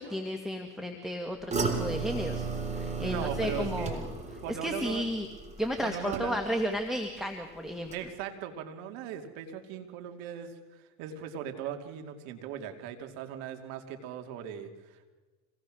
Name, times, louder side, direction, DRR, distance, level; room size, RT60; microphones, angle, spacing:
voice 1, 0.0-2.5 2.7-4.1 4.5-5.3 5.6-7.9, equal, ahead, 3 dB, 2.0 m, -33 dB
sound 1, 1.5-6.7 7.0-7.5 7.9-8.0, right 4 dB, 20° right, 3.9 m, -34 dB
voice 2, 3.0-4.0 4.4-5.0 5.8-6.4 7.9-15.1, right 9 dB, 70° right, 6 dB, 2.7 m, -39 dB
26.0 x 18.5 x 6.4 m, 1.3 s
supercardioid pair, 105°, 36 cm